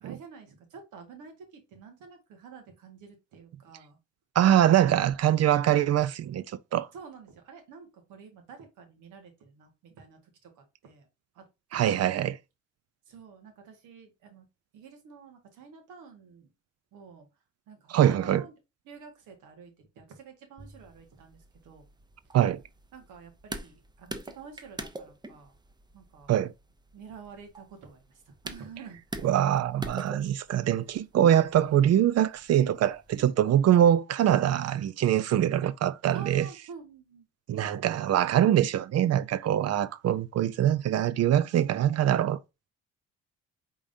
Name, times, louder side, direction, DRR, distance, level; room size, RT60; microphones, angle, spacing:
voice 1, 0.0-4.0 6.9-11.1 11.3-11.4 11.7-12.0 13.1-14.4 14.7-16.5 16.9-17.3 17.7-18.5 18.8-21.8 22.9-25.5 25.9-26.3 26.9-29.2 36.1-37.3, right 5 dB, 85° right, 1.6 m, -49 dB
voice 2, 4.4-6.9 11.7-12.4 17.9-18.4 22.3-22.6 26.3-26.5 29.2-36.5 37.5-42.4, right 11 dB, 55° right, 0.5 m, -23 dB
Bucket Splash Close, 20.6-33.3, right 2 dB, 15° right, 0.6 m, -45 dB
5.0 x 3.6 x 2.7 m
cardioid pair, 90°, 30 cm